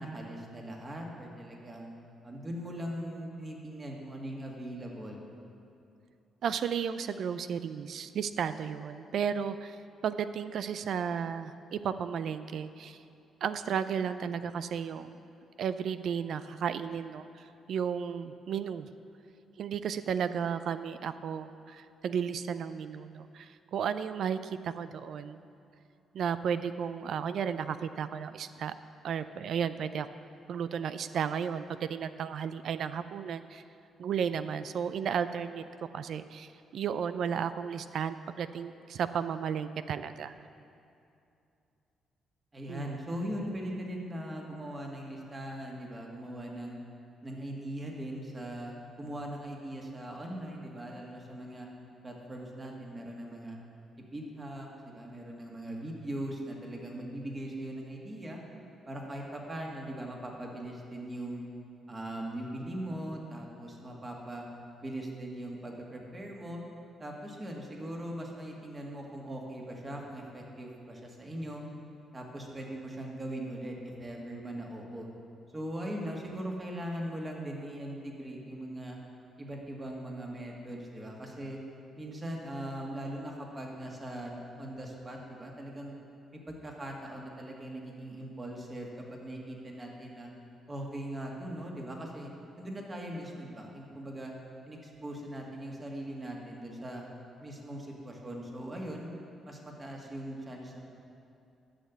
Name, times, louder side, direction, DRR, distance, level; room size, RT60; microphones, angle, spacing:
voice 1, 0.0-1.9 2.2-5.2 42.5-46.8 47.2-51.7 52.0-53.6 54.1-58.4 58.9-61.4 61.9-64.4 64.8-66.6 67.0-71.6 72.1-75.1 75.5-79.0 79.4-81.6 82.0-86.0 86.3-90.3 90.7-92.3 92.6-94.3 94.7-97.0 97.4-99.1 99.4-100.8, right 1 dB, 25° right, 0 dB, 2.1 m, -40 dB
voice 2, 6.4-9.8 10.0-13.0 13.4-15.2 15.6-18.9 19.6-25.4 26.1-28.7 29.0-30.1 30.5-33.6 34.0-35.6 35.9-40.3 42.7-43.0, right 7 dB, 65° right, 12 dB, 0.4 m, -33 dB
11.5 x 6.6 x 8.3 m, 2.6 s
cardioid pair, 90°, 0 cm